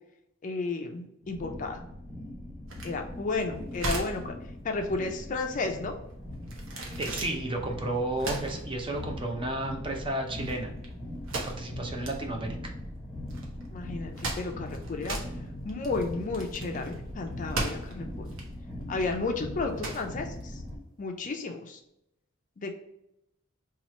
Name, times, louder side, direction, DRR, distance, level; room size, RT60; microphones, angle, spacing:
voice 1, 0.4-1.8 2.8-4.3 4.6-5.9 13.7-15.2 15.6-18.3 18.9-20.6 21.0-21.8 22.6-22.7, left 3 dB, 40° left, 4 dB, 0.4 m, -33 dB
sound 1, 1.2-20.7, left 1 dB, ahead, 0.9 m, -40 dB
sound 2, 2.7-21.2, right 2 dB, 70° right, 0.8 m, -38 dB
voice 2, 7.0-10.7 11.3-12.7, right 1 dB, 25° right, 2 dB, 0.5 m, -32 dB
3.0 x 2.3 x 4.2 m, 0.83 s
head